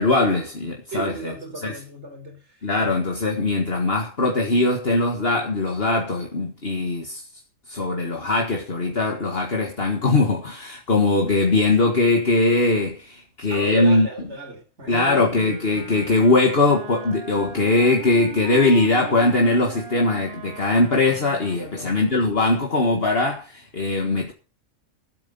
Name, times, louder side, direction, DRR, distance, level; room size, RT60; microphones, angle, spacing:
voice 1, 0.0-1.3 1.6-1.8 2.6-7.2 7.7-14.1 14.9-24.3, left 2 dB, 50° left, 2.1 m, -21 dB
voice 2, 0.9-2.6 13.5-15.2 21.6-22.0, right 3 dB, 60° right, 4.5 m, -33 dB
Wind instrument woodwind instrument, 15.3-22.6, right 6 dB, 90° right, 3.6 m, -40 dB
15.0 x 8.5 x 5.5 m
omnidirectional pair, 1.3 m